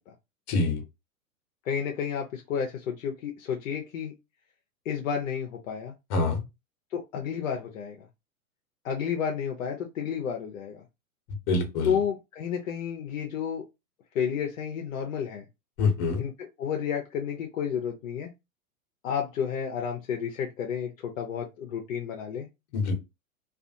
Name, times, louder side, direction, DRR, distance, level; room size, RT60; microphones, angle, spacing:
voice 1, 0.5-0.8 6.1-6.4 11.5-12.0 15.8-16.2 22.7-22.9, left 3 dB, 40° left, 1.0 m, -25 dB
voice 2, 1.6-4.1 4.9-5.9 6.9-8.1 8.8-10.8 11.8-13.7 14.1-15.4 16.2-18.3 19.0-22.5, left 7 dB, 65° left, 0.7 m, -31 dB
2.5 x 2.4 x 2.6 m
hypercardioid pair, 105°, 43 cm